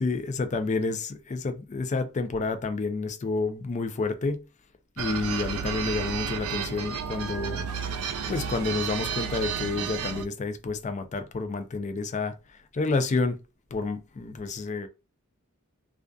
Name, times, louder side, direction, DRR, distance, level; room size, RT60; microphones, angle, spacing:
voice 1, 0.0-4.4 5.0-7.7 8.3-12.3 12.7-13.4 13.7-14.9, left 3 dB, 35° left, 0.4 m, -29 dB
sound 1, 5.0-10.2, right 6 dB, 85° right, 0.4 m, -32 dB
2.5 x 2.3 x 2.2 m
head